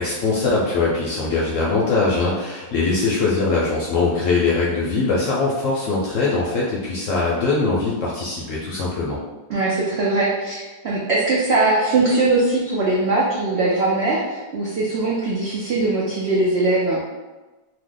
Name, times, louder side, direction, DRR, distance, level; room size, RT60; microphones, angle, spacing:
voice 1, 0.0-9.2, left 3 dB, 70° left, -5 dB, 0.8 m, -21 dB
voice 2, 9.5-17.0, right 2 dB, 85° right, -5 dB, 0.5 m, -21 dB
2.7 x 2.1 x 3.7 m, 1.2 s
omnidirectional pair, 1.7 m